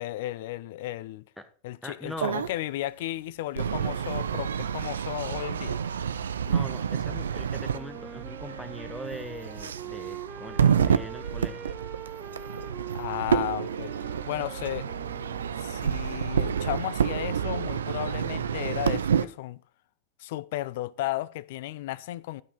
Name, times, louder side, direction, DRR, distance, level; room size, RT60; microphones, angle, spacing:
voice 1, 0.0-1.2 1.6-5.8 12.9-14.0 14.3-14.9 15.6-19.6 20.2-22.4, left 15 dB, 50° left, 0.5 m, -34 dB
voice 2, 1.8-2.4 6.4-11.7, equal, 5° left, 1.1 m, -41 dB
sound 1, 2.2-2.5 3.6-19.3, right 7 dB, 65° right, 0.6 m, -29 dB
Wind instrument woodwind instrument, 7.7-16.1, right 8 dB, 20° right, 0.7 m, -43 dB
12.5 x 5.7 x 5.2 m
figure-of-eight pair, 90°, 0 cm